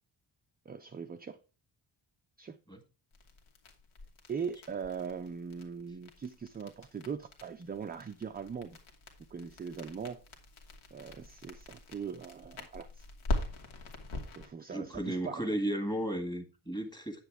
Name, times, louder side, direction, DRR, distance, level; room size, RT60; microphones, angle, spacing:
voice 1, 0.7-1.4 2.4-2.6 4.3-8.8 9.3-10.2 10.9-13.1 14.4-15.4, right 6 dB, 20° right, 0.4 m, -40 dB
sound 1, 3.1-14.5, left 2 dB, 90° left, 2.7 m, -42 dB
voice 2, 14.7-17.2, right 1 dB, 10° left, 1.8 m, -34 dB
10.0 x 8.2 x 3.5 m
wide cardioid pair, 180°, 46 cm